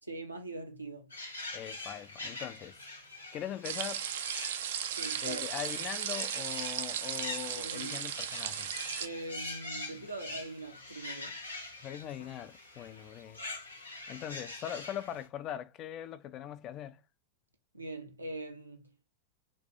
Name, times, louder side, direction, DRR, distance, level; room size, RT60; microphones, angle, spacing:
voice 1, 0.0-1.1 5.0-5.4 7.6-8.0 9.0-11.4 17.7-18.9, right 2 dB, 85° right, 0.7 m, -42 dB
sound 1, 1.1-15.3, left 2 dB, 85° left, 1.0 m, -44 dB
voice 2, 1.5-2.8 3.3-4.1 5.2-8.7 11.8-13.4 14.1-17.0, left 11 dB, 35° left, 0.3 m, -41 dB
sound 2, 3.6-9.1, right 9 dB, 55° right, 0.3 m, -36 dB
4.1 x 2.5 x 3.5 m
figure-of-eight pair, 90°, 0 cm